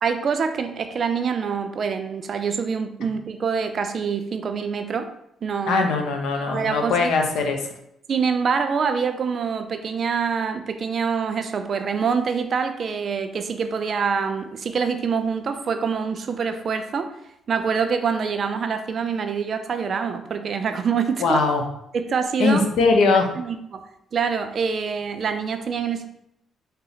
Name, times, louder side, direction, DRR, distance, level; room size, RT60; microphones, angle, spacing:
voice 1, 0.0-5.1 5.4-5.9 6.5-7.1 8.1-17.1 17.5-21.5 21.9-22.6 23.4-23.8 24.1-26.1, right 6 dB, 50° right, 7 dB, 0.4 m, -25 dB
voice 2, 5.7-7.6 21.2-21.6 22.4-23.3, left 4 dB, 80° left, 4 dB, 0.6 m, -20 dB
3.9 x 2.0 x 3.9 m, 0.78 s
cardioid pair, 90°, 0 cm